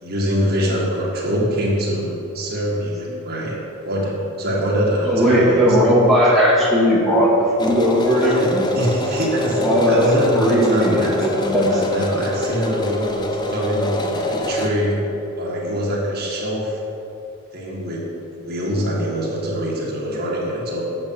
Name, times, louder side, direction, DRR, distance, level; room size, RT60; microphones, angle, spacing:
voice 1, 0.0-3.6 3.9-5.6 8.2-9.6 9.9-11.1 11.7-15.0 15.4-16.8 17.5-18.1 18.4-20.8, equal, 50° right, -4 dB, 1.7 m, -24 dB
voice 2, 5.0-8.6 9.5-10.1 10.3-12.2, equal, ahead, -7 dB, 1.5 m, -17 dB
sound 1, 7.6-14.7, left 1 dB, 20° left, 0.6 m, -25 dB
7.8 x 7.3 x 5.5 m, 2.8 s
head